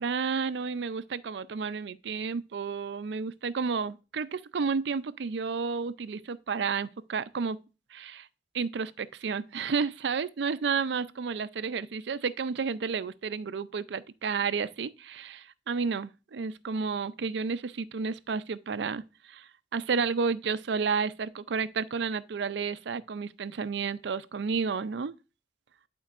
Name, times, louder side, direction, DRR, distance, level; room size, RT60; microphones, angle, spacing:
voice 1, 0.0-7.6 7.9-8.3 8.5-25.1, right 5 dB, 70° right, 0.5 m, -31 dB
11.0 x 4.4 x 2.5 m
head